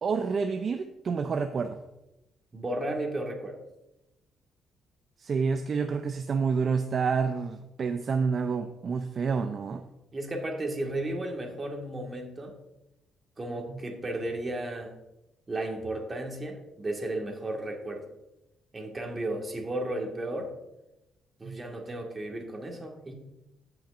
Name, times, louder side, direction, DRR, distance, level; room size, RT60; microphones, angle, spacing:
voice 1, 0.0-1.8 5.2-9.8 21.4-21.6, right 5 dB, 50° right, 7 dB, 0.5 m, -28 dB
voice 2, 2.5-3.6 10.1-12.6 13.4-14.9 15.5-18.0 18.7-20.5 21.4-23.1, right 1 dB, 30° right, 2 dB, 1.8 m, -34 dB
16.0 x 5.9 x 2.6 m, 0.94 s
cardioid pair, 90°, 0 cm